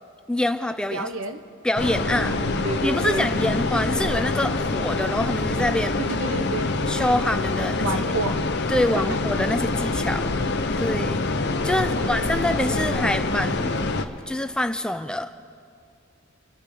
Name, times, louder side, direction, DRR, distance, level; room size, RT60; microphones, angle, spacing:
voice 1, 0.3-1.1 1.6-2.4 2.8-6.0 6.9-7.9 8.7-10.3 10.8-11.2 11.6-13.7 14.3-15.3, left 1 dB, 5° left, 9 dB, 0.4 m, -25 dB
voice 2, 0.9-1.4 1.9-3.3 6.0-6.7 7.8-8.4 8.8-9.2 11.8-12.4, right 2 dB, 75° right, 8 dB, 1.1 m, -31 dB
sound 1, 1.8-14.1, left 3 dB, 50° left, 0.8 m, -25 dB
28.0 x 9.5 x 5.1 m, 2.2 s
head